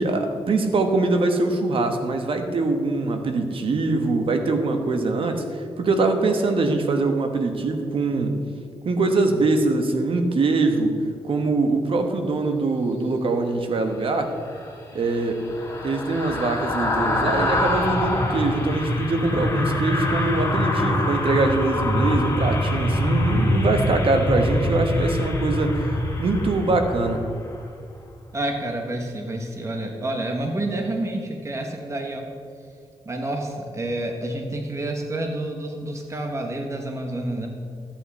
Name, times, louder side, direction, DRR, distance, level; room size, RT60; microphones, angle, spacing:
voice 1, 0.0-8.4 8.8-11.0 11.2-14.3 14.9-15.4 15.8-27.2, right 3 dB, 60° right, 5 dB, 1.3 m, -23 dB
sound 1, 14.4-27.7 28.1-28.3, left 1 dB, 30° left, 2.2 m, -24 dB
voice 2, 28.3-32.3 33.0-37.5, right 1 dB, 30° right, 2 dB, 1.4 m, -29 dB
13.5 x 8.9 x 4.3 m, 2.3 s
cardioid pair, 90°, 10 cm